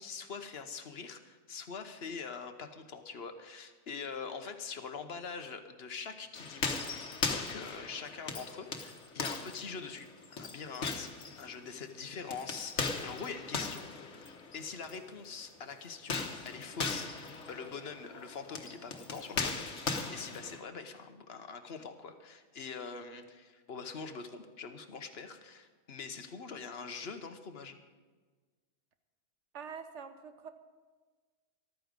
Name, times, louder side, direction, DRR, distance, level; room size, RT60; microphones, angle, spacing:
voice 1, 0.0-6.8 7.3-10.1 10.4-13.9 14.3-27.8, left 5 dB, 60° left, 8 dB, 1.2 m, -44 dB
sound 1, 6.4-15.0 16.0-20.6, left 4 dB, 85° left, 1.5 m, -38 dB
voice 2, 29.5-30.5, right 6 dB, 85° right, 9 dB, 1.3 m, -45 dB
14.0 x 12.5 x 5.2 m, 1.4 s
omnidirectional pair, 1.2 m